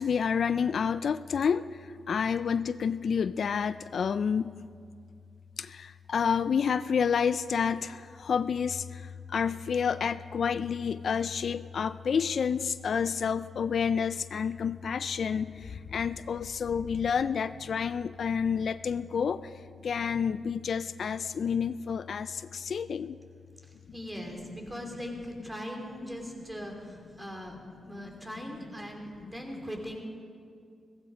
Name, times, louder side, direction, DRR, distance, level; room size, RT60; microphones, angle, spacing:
voice 1, 0.0-4.6 5.6-19.4 19.8-23.2, left 6 dB, 65° left, 14 dB, 0.3 m, -29 dB
voice 2, 23.9-27.6 27.8-30.0, equal, 15° right, 2 dB, 3.2 m, -40 dB
16.0 x 15.5 x 5.0 m, 2.3 s
cardioid pair, 70°, 0 cm